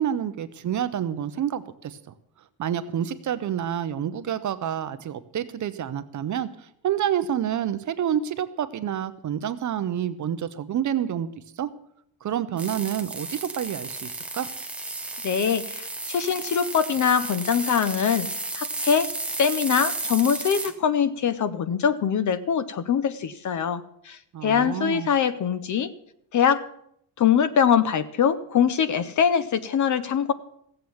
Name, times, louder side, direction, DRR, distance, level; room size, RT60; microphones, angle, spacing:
voice 1, 0.0-2.0 2.6-11.3 11.6-11.7 12.2-14.5 24.3-25.1, right 9 dB, 40° right, 12 dB, 0.6 m, -28 dB
sound 1, 12.6-20.7, right 2 dB, 5° right, 0.7 m, -33 dB
voice 2, 15.2-18.3 18.5-19.1 19.4-25.9 26.3-26.6 27.2-30.3, left 7 dB, 40° left, 15 dB, 0.6 m, -23 dB
15.5 x 7.8 x 7.1 m, 0.72 s
cardioid pair, 175°, 47 cm